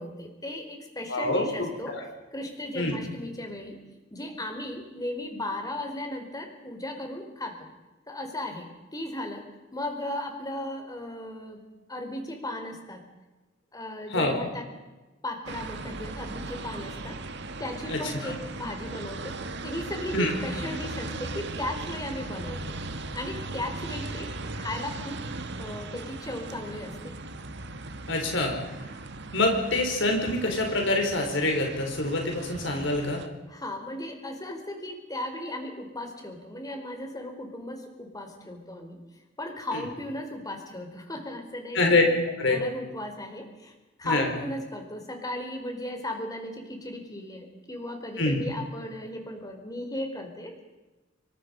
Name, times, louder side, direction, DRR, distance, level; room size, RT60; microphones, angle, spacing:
voice 1, 0.0-2.0 2.3-3.8 4.1-7.7 8.1-9.4 9.7-11.6 11.9-13.0 13.7-14.7 15.2-17.2 17.6-22.7 23.1-25.2 25.6-27.1 33.5-39.0 39.4-42.0 42.5-43.7 44.0-50.6, left 1 dB, 20° left, 4 dB, 4.4 m, -36 dB
voice 2, 1.1-2.0 2.7-2.9 14.1-14.4 17.9-18.3 20.1-20.3 28.1-28.5 29.3-33.2 39.7-39.8 41.7-42.0 42.4-42.6 44.0-44.3 48.2-48.4, left 2 dB, 70° left, 3 dB, 4.8 m, -25 dB
sound 1, 15.5-33.3, right 2 dB, 60° right, 1.8 m, -38 dB
26.0 x 23.5 x 5.5 m, 1.2 s
head